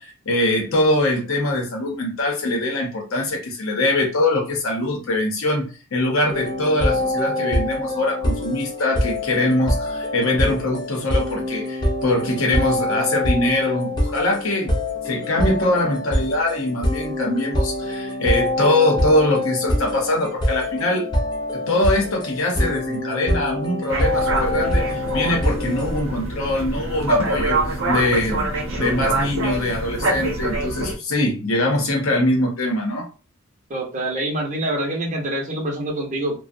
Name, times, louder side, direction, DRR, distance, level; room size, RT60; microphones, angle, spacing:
voice 1, 0.0-14.8 15.0-21.1 21.5-28.4 28.8-33.1, left 1 dB, 75° left, 1 dB, 0.7 m, -22 dB
sound 1, 6.3-26.0, left 1 dB, 20° left, 0.5 m, -25 dB
sound 2, 23.9-30.9, right 2 dB, 75° right, 0.7 m, -25 dB
voice 2, 33.7-36.3, right 1 dB, 35° right, 0 dB, 0.6 m, -25 dB
2.3 x 2.1 x 2.5 m, 0.34 s
head